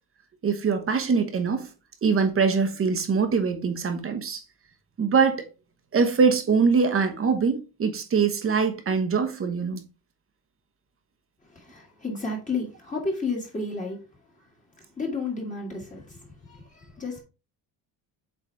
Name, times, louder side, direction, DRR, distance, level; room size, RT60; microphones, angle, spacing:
voice 1, 0.4-1.7 2.0-4.4 5.0-5.4 5.9-9.8, right 5 dB, 30° right, 1.1 m, -23 dB
voice 2, 11.4-14.5 14.8-17.2, left 3 dB, 20° left, 1.8 m, -32 dB
7.9 x 4.1 x 3.2 m
cardioid pair, 155°, 42 cm